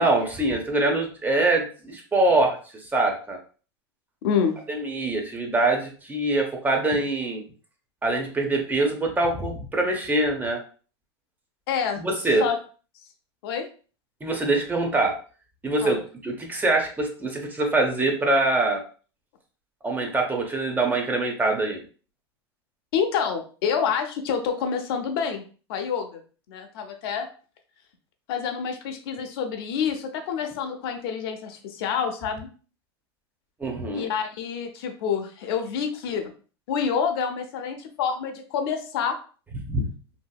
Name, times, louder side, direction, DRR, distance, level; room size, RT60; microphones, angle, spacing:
voice 1, 0.0-2.6 2.9-3.4 4.7-7.4 8.0-10.6 12.0-12.5 14.2-15.2 15.6-18.8 19.8-21.8 33.6-34.1 39.7-39.9, right 2 dB, 15° right, 2 dB, 0.7 m, -24 dB
voice 2, 4.2-4.6 11.7-12.0 12.4-12.6 13.4-13.6 15.8-16.0 22.9-25.4 25.7-26.2 26.5-27.3 28.3-32.5 33.9-36.3 36.7-39.1, left 7 dB, 65° left, 5 dB, 0.7 m, -27 dB
2.8 x 2.6 x 2.3 m, 0.39 s
hypercardioid pair, 110°, 14 cm